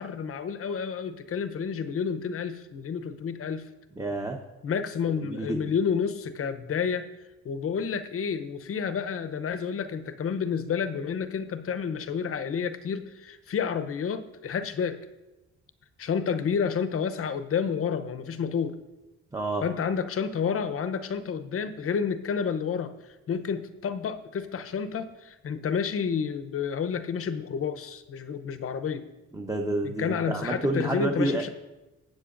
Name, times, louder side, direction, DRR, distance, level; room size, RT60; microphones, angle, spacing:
voice 1, 0.0-3.7 4.6-7.1 7.4-15.0 16.0-18.8 19.6-22.9 23.3-29.0 29.8-31.5, left 6 dB, 50° left, 10 dB, 0.8 m, -30 dB
voice 2, 4.0-4.4 5.2-5.7 19.3-19.6 29.3-31.4, right 2 dB, 10° right, 2 dB, 0.8 m, -29 dB
15.0 x 8.0 x 2.5 m, 1.0 s
cardioid pair, 90°, 30 cm